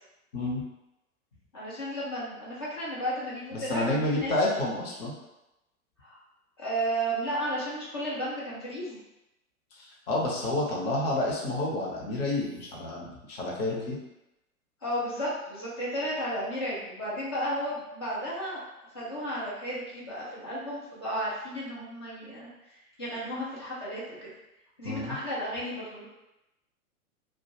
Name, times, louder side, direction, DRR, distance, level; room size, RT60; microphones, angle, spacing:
voice 1, 0.3-0.6 3.5-5.1 9.8-14.0 24.8-25.2, left 2 dB, 45° left, -3 dB, 0.8 m, -29 dB
voice 2, 1.5-4.3 4.6-4.8 6.0-6.2 6.6-9.0 14.8-18.6 18.9-24.3 24.8-26.1, equal, 20° left, -7 dB, 0.3 m, -33 dB
2.4 x 2.2 x 2.9 m, 0.94 s
figure-of-eight pair, 110°, 44 cm